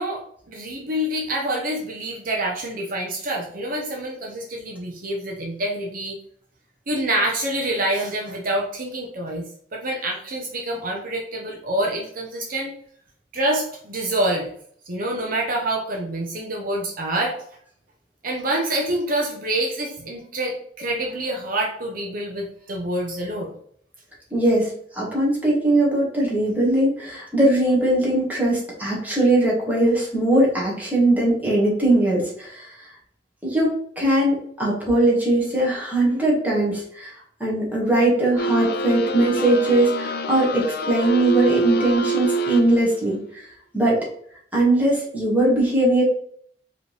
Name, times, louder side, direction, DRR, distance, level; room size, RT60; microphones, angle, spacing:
voice 1, 0.0-6.2 6.9-9.4 9.7-12.7 13.3-14.5 14.9-17.4 18.2-23.5, right 1 dB, 50° right, 0 dB, 0.8 m, -26 dB
voice 2, 24.3-32.9 33.4-37.1 37.4-43.4 43.7-44.0 44.5-46.0, right 1 dB, 10° right, -5 dB, 1.6 m, -20 dB
sound 1, 38.4-43.0, right 2 dB, 60° left, 0.4 m, -26 dB
4.8 x 3.1 x 3.3 m, 0.62 s
head